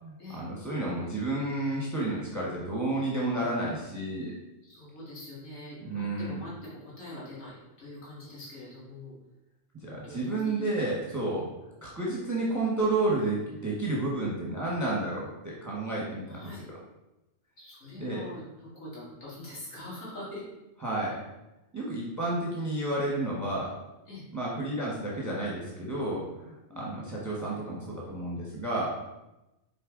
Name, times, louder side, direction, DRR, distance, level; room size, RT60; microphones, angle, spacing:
voice 1, 0.0-4.3 5.8-6.4 9.8-11.5 11.8-16.5 18.0-18.2 20.8-21.2 21.7-23.7 24.3-29.0, right 2 dB, 15° right, -5 dB, 1.3 m, -31 dB
voice 2, 4.6-9.2 10.0-10.8 11.2-11.5 16.3-16.6 17.6-20.4 24.1-24.2 26.7-27.0, left 2 dB, 85° left, -8 dB, 2.5 m, -44 dB
6.6 x 4.5 x 3.9 m, 0.96 s
omnidirectional pair, 1.3 m